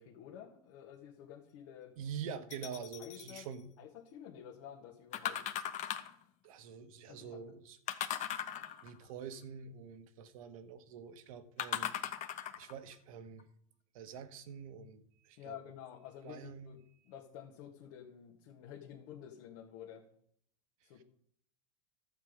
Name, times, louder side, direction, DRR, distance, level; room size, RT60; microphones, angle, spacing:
voice 1, 0.0-1.9 3.0-3.5 3.8-5.4 7.1-7.4 15.4-16.8 17.1-20.0 20.8-21.0, left 9 dB, 60° left, -1 dB, 1.8 m, -50 dB
voice 2, 2.0-3.7 6.4-7.8 8.8-11.9 12.6-13.5 13.9-15.6 16.2-16.8 21.0-21.1, right 7 dB, 70° right, 10 dB, 1.3 m, -46 dB
sound 1, 2.5-3.4 5.1-6.2 7.9-9.0 11.6-12.7 13.4-13.5, left 10 dB, 40° left, 1.1 m, -38 dB
12.0 x 8.2 x 5.2 m, 0.67 s
hypercardioid pair, 100°, 18 cm